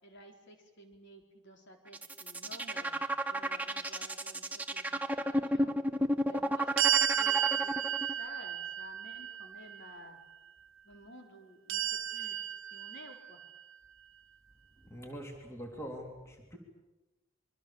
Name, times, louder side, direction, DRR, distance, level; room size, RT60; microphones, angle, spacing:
voice 1, 0.0-3.0 3.3-5.7 6.2-10.2 10.8-12.4 12.7-13.4, equal, 55° left, 3 dB, 4.3 m, -53 dB
sound 1, 1.9-8.1, equal, 5° right, 1.2 m, -32 dB
sound 2, 6.8-9.9 11.7-13.4, right 11 dB, 60° right, 1.0 m, -32 dB
voice 2, 14.8-16.6, equal, 15° left, 2 dB, 3.4 m, -44 dB
27.0 x 23.5 x 7.3 m, 1.1 s
head